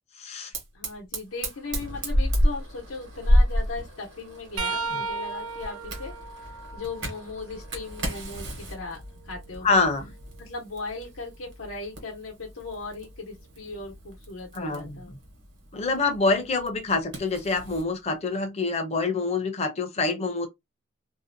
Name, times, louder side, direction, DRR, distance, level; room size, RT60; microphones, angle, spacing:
voice 1, 0.2-0.5 9.6-10.0 14.5-15.0 15.7-20.5, left 3 dB, 30° left, 0.5 m, -26 dB
Fire, 0.5-17.9, equal, 60° right, 1.0 m, -31 dB
voice 2, 0.7-9.8 10.4-15.2, left 3 dB, 85° left, 0.8 m, -38 dB
sound 1, 4.6-8.3 8.9-10.8 13.7-13.9 15.1-15.3 16.6-16.7, right 4 dB, 90° right, 0.5 m, -37 dB
2.6 x 2.0 x 2.5 m
head